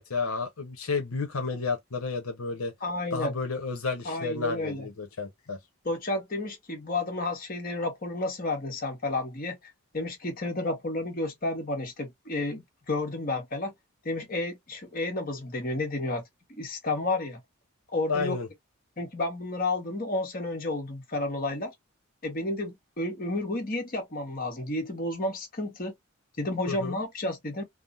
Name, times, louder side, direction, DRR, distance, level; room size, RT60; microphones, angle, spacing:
voice 1, 0.0-2.7 3.1-5.6 18.1-18.5 26.7-27.0, left 4 dB, 80° left, 0.8 m, -31 dB
voice 2, 2.8-3.3 4.0-4.9 5.8-9.6 9.9-13.7 14.0-16.2 16.5-17.4 17.9-18.4 19.0-21.7 22.2-25.9 26.4-27.6, left 2 dB, 40° left, 1.2 m, -31 dB
3.5 x 2.0 x 2.5 m
head